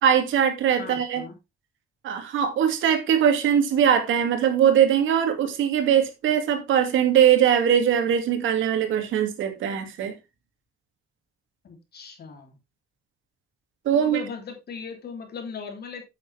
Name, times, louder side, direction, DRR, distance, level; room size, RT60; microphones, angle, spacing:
voice 1, 0.0-1.2 2.0-10.1 13.8-14.2, right 9 dB, 80° right, 2.5 m, -21 dB
voice 2, 0.8-1.3 11.6-12.6 13.9-16.0, left 6 dB, 55° left, 3.4 m, -38 dB
9.3 x 7.9 x 3.5 m
cardioid pair, 90°, 20 cm